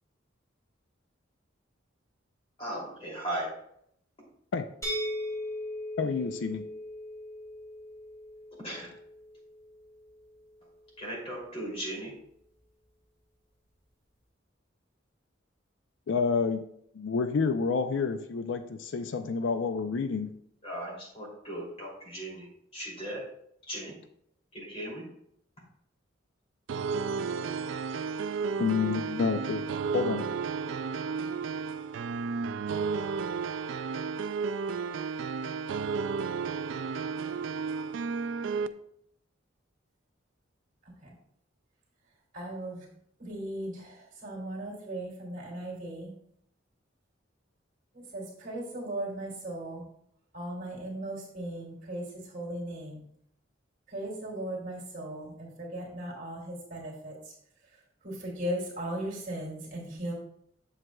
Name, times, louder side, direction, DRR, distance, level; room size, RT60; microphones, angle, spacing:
voice 1, 2.6-3.5 8.6-8.9 11.0-12.1 20.6-22.5 22.7-23.2 23.7-23.9 24.5-25.0, right 1 dB, 30° left, -4 dB, 2.8 m, -37 dB
sound 1, 4.8-10.6, left 1 dB, 15° left, 2.2 m, -39 dB
voice 2, 6.0-6.6 16.1-16.6 16.9-20.3 28.6-29.6 29.9-30.3, left 5 dB, 70° left, 9 dB, 0.4 m, -29 dB
sound 2, 26.7-38.7, right 5 dB, 75° right, 0.3 m, -32 dB
voice 3, 42.3-42.9 43.2-46.1 47.9-49.9 50.3-53.1 53.9-57.3 58.0-60.1, right 1 dB, 45° right, -3 dB, 2.6 m, -37 dB
7.7 x 7.3 x 2.3 m, 0.71 s
head